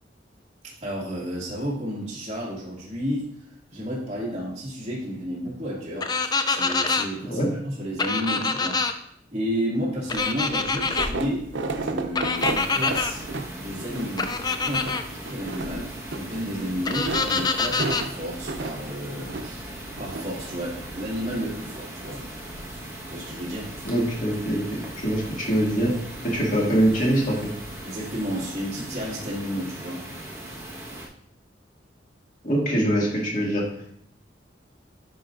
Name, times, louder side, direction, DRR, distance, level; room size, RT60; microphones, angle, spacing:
voice 1, 0.8-3.3 3.7-8.8 9.3-11.5 11.8-13.2 13.6-14.4 14.6-15.0 15.3-19.7 20.0-22.2 23.1-23.7 27.8-30.1, equal, 35° right, -7 dB, 2.2 m, -31 dB
sound 1, 6.0-7.1 8.0-8.9 10.1-11.1 12.2-13.1 14.2-15.0 16.9-18.1, left 4 dB, 20° left, 0.4 m, -25 dB
sound 2, 10.0-27.9, right 3 dB, 85° right, 0.6 m, -36 dB
sound 3, 12.4-31.1, right 1 dB, 15° right, 1.3 m, -39 dB
voice 2, 23.8-24.6 25.0-25.9 26.2-27.5 32.4-33.6, right 1 dB, 45° left, -3 dB, 2.1 m, -23 dB
10.0 x 5.2 x 2.5 m, 0.69 s
head